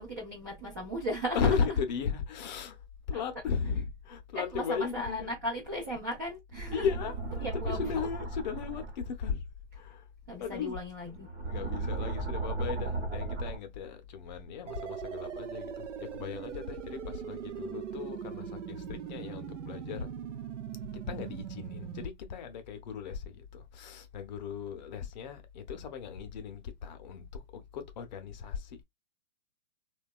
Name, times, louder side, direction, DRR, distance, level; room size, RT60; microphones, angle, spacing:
voice 1, 0.0-1.8 3.1-3.2 4.3-6.9 7.4-8.1 10.3-11.3 21.1-21.3, equal, 20° right, 0.3 m, -36 dB
voice 2, 1.3-2.8 3.1-5.3 6.7-9.4 9.8-10.0 10.4-10.8 11.4-20.1 21.1-27.3 27.5-28.8, left 6 dB, 40° left, 0.6 m, -36 dB
sound 1, 6.5-9.0 11.1-13.6, right 3 dB, 55° right, 0.9 m, -36 dB
sound 2, 14.7-22.1, right 9 dB, 90° right, 0.5 m, -40 dB
2.8 x 2.2 x 2.3 m
hypercardioid pair, 140°, 36 cm